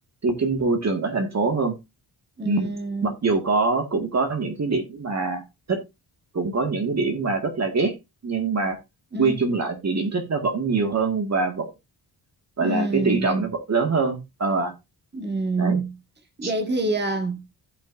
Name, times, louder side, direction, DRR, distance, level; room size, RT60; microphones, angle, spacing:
voice 1, 0.2-1.8 2.4-2.7 3.0-5.4 5.7-5.8 6.3-7.9 8.2-8.8 9.2-11.7 12.6-14.7 15.6-15.8 16.4-16.5, right 4 dB, 40° right, 1.8 m, -24 dB
voice 2, 2.4-3.1 9.1-9.4 12.6-13.5 15.1-16.0 16.4-17.5, right 2 dB, 25° right, 1.8 m, -26 dB
15.0 x 5.9 x 2.5 m
wide cardioid pair, 130°, 39 cm